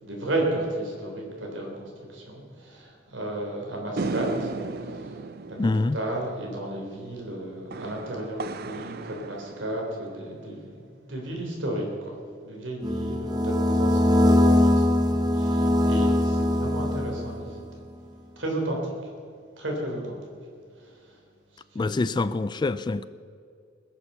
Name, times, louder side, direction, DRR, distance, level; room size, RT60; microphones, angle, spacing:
voice 1, 0.0-4.5 4.8-5.2 5.6-12.1 12.4-17.6 18.4-18.9 19.6-20.2 20.8-20.9 21.7-22.1, right 1 dB, 85° right, 3.7 m, -33 dB
sound 1, 4.0-10.5, right 3 dB, 55° right, 0.6 m, -36 dB
voice 2, 5.6-6.0 21.8-23.1, left 3 dB, 25° left, 0.3 m, -25 dB
sound 2, 12.8-17.5, left 1 dB, 20° right, 0.9 m, -21 dB
20.5 x 7.2 x 6.8 m
head